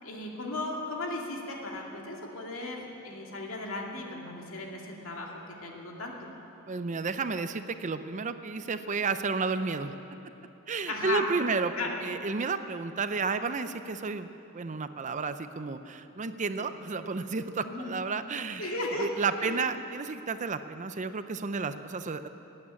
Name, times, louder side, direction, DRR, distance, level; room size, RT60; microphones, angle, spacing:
voice 1, 0.0-5.3 5.6-6.1 10.9-11.3 11.8-12.0 16.6-16.7 17.7-17.9 18.6-19.1 19.3-19.6, left 2 dB, 70° left, -1 dB, 2.3 m, -36 dB
voice 2, 6.7-9.9 10.7-11.7 12.0-14.3 14.5-22.3, right 4 dB, 35° right, 10 dB, 0.5 m, -32 dB
19.0 x 8.9 x 8.4 m, 2.9 s
head